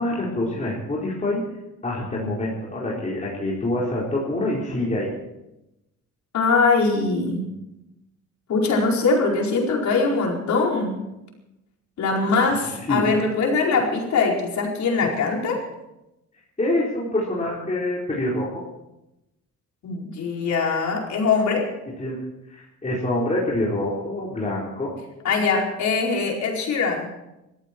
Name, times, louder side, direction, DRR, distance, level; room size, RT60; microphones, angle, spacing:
voice 1, 0.0-1.4 1.8-5.1 12.9-13.1 16.6-18.6 22.0-22.2 22.5-25.0, left 1 dB, 25° left, -5 dB, 4.5 m, -26 dB
voice 2, 6.3-7.5 8.5-11.0 12.0-15.6 19.8-21.7 25.2-27.1, left 4 dB, 65° left, -1 dB, 4.7 m, -22 dB
21.0 x 14.5 x 4.6 m, 0.94 s
cardioid pair, 90°, 30 cm